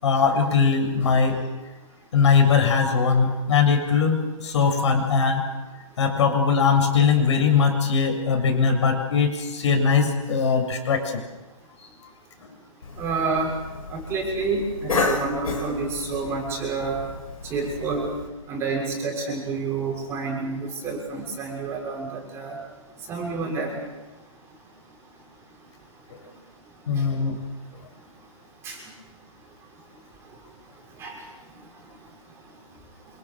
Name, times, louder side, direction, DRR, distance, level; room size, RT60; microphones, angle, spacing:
voice 1, 0.0-1.5 2.1-5.5 6.0-11.2 26.9-27.5, left 5 dB, 55° left, 4 dB, 7.6 m, -20 dB
Cough, 12.8-18.3, left 3 dB, 75° left, 7.6 m, -31 dB
voice 2, 12.9-13.5 13.9-17.1 17.4-18.1 18.5-22.6 23.1-23.9 27.0-27.1 28.6-28.8 31.0-31.2, right 4 dB, 15° right, -1 dB, 6.7 m, -29 dB
29.0 x 28.0 x 6.4 m, 1.1 s
hypercardioid pair, 160°, 18 cm